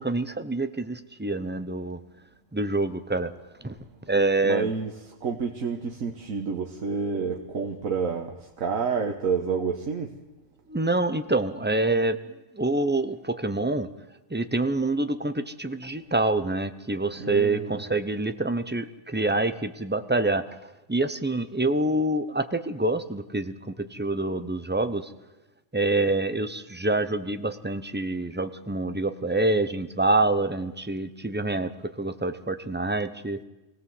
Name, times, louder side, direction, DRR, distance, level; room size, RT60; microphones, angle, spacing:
voice 1, 0.0-2.0 2.5-3.3 3.6-3.7 4.1-4.7 10.7-12.2 12.5-13.9 14.3-20.4 20.9-25.1 25.7-31.7 32.0-33.4, right 2 dB, 10° right, 10 dB, 0.7 m, -26 dB
voice 2, 4.4-4.9 5.2-10.1 17.2-17.8, right 5 dB, 85° right, 3 dB, 1.7 m, -29 dB
24.5 x 17.5 x 7.8 m, 1.0 s
omnidirectional pair, 1.4 m